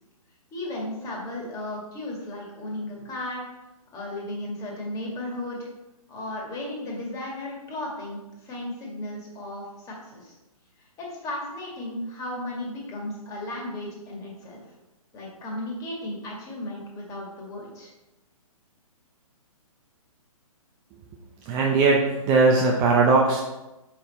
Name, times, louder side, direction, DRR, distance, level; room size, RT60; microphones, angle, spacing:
voice 1, 0.5-3.5 3.9-5.7 6.1-10.3 10.8-14.6 15.1-17.9, left 1 dB, 20° left, -2 dB, 1.8 m, -35 dB
voice 2, 21.5-23.4, right 4 dB, 20° right, -1 dB, 0.6 m, -19 dB
5.8 x 5.4 x 4.1 m, 1.0 s
hypercardioid pair, 145°, 19 cm